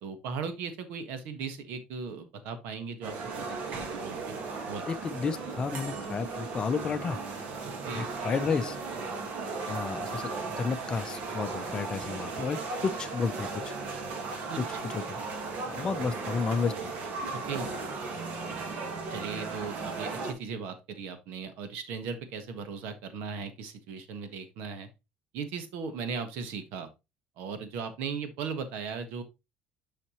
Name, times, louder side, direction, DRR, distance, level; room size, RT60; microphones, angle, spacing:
voice 1, 0.0-4.3 4.7-4.9 7.6-8.1 9.1-9.2 14.5-14.6 17.5-17.7 18.8-24.9 25.3-26.9 27.4-29.2, right 5 dB, 75° right, 1.5 m, -38 dB
sound 1, 3.0-20.3, right 4 dB, 50° right, 1.8 m, -36 dB
voice 2, 4.9-7.2 7.9-8.8 9.7-13.7 14.6-15.2 15.7-16.7, left 5 dB, 25° left, 0.6 m, -32 dB
7.1 x 5.8 x 3.1 m
cardioid pair, 150°, 3 cm